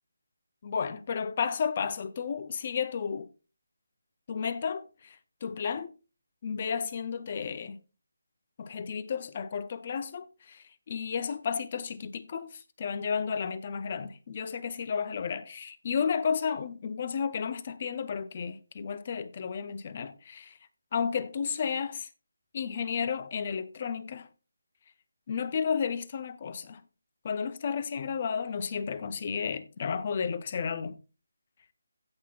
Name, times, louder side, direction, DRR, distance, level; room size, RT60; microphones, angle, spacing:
voice 1, 0.6-3.3 4.3-5.9 6.4-7.8 8.6-20.6 20.9-22.1 22.5-24.3 25.3-26.8 27.2-31.0, left 6 dB, 25° left, 0.5 m, -32 dB
16.5 x 5.7 x 2.3 m
hypercardioid pair, 175°, 0 cm